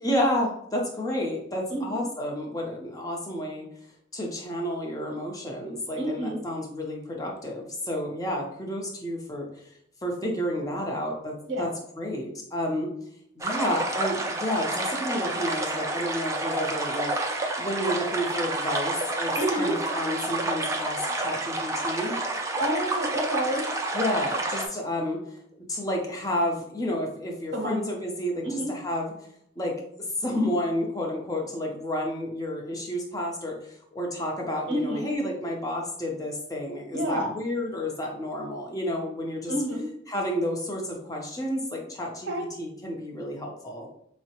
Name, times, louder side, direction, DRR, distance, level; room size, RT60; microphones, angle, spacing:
voice 1, 0.0-3.7 4.1-9.5 10.0-12.9 13.4-17.1 17.6-22.2 23.9-25.2 25.7-29.1 29.6-29.8 30.2-39.5 40.1-43.9, left 1 dB, 20° left, -1 dB, 0.7 m, -30 dB
voice 2, 6.0-6.4 11.5-11.6 19.4-19.7 22.6-23.6 27.5-27.8 28.4-28.7 34.7-35.0 36.9-37.3 39.5-39.8 42.3-42.4, right 1 dB, 60° right, 3 dB, 0.8 m, -28 dB
sound 1, 13.4-24.7, right 2 dB, 15° right, 0.4 m, -29 dB
4.5 x 2.1 x 2.9 m, 0.71 s
head